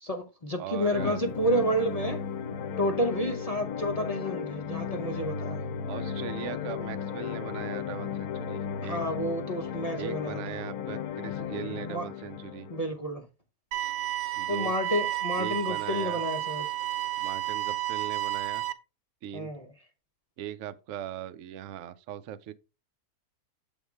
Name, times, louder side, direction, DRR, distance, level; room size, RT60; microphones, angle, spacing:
voice 1, 0.0-2.2 2.8-5.6 8.8-10.4 11.8-12.1 12.7-13.3 14.5-16.7 19.3-19.7, equal, 40° left, 0.6 m, -30 dB
voice 2, 0.6-1.2 5.9-9.0 10.0-12.7 14.4-14.7 15.4-16.2 17.2-18.6 19.2-19.5 20.4-22.5, right 10 dB, 65° right, 0.9 m, -39 dB
sound 1, 0.9-12.9, left 7 dB, 80° left, 1.2 m, -35 dB
sound 2, 13.7-18.7, right 15 dB, 90° right, 1.2 m, -31 dB
7.1 x 3.6 x 4.7 m
omnidirectional pair, 1.6 m